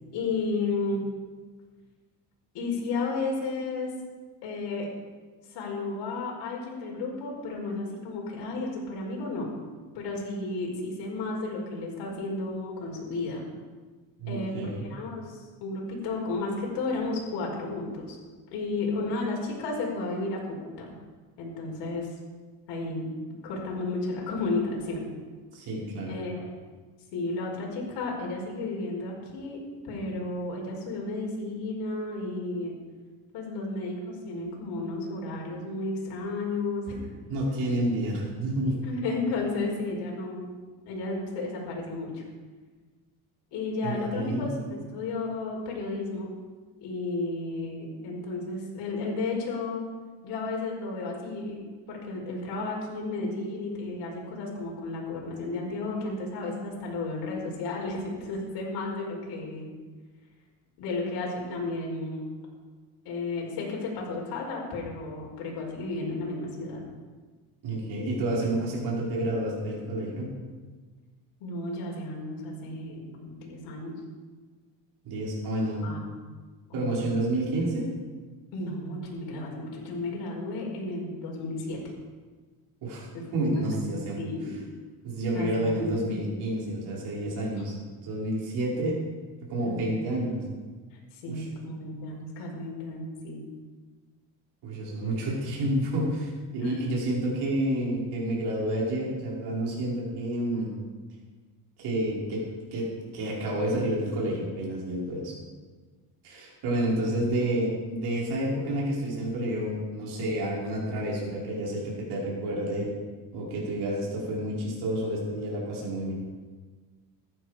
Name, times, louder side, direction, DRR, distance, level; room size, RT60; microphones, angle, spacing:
voice 1, 0.1-1.0 2.5-3.9 4.4-4.9 5.5-9.5 9.9-13.4 14.3-18.2 18.5-20.9 21.4-22.1 22.7-23.1 23.4-25.0 26.1-26.5 27.1-32.7 33.3-37.1 38.8-40.5 40.8-42.2 43.5-46.3 46.8-49.8 50.2-51.6 51.9-59.7 60.8-62.3 63.0-66.8 71.4-74.0 75.8-76.0 76.7-77.0 78.5-81.8 83.1-83.8 84.2-84.5 85.3-86.2 89.6-90.0 91.1-93.4 96.6-96.7 107.0-107.1, left 3 dB, 75° left, -2 dB, 4.9 m, -33 dB
voice 2, 14.2-14.9 25.5-26.2 37.3-38.8 43.8-44.5 67.6-70.3 75.0-75.9 76.7-77.9 82.8-84.3 85.0-87.7 88.0-89.0 89.5-90.4 91.3-91.5 94.6-100.7 101.8-102.9 103.1-105.3 106.2-112.9 113.3-116.1, right 1 dB, 65° right, -4 dB, 5.2 m, -29 dB
15.5 x 11.5 x 5.1 m, 1.4 s
cardioid pair, 145°, 42 cm